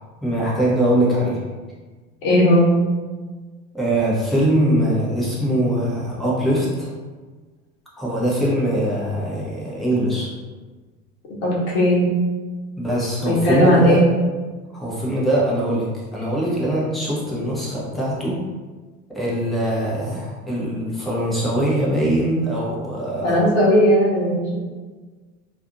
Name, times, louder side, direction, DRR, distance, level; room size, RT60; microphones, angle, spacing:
voice 1, 0.2-1.4 3.7-6.9 8.0-10.3 12.8-14.0 14.7-18.4 19.1-23.4, right 1 dB, ahead, -7 dB, 0.8 m, -22 dB
voice 2, 2.2-2.8 11.4-12.1 13.2-14.0 23.2-24.6, equal, 55° left, -5 dB, 1.0 m, -17 dB
2.5 x 2.5 x 2.6 m, 1.4 s
figure-of-eight pair, 75°, 43 cm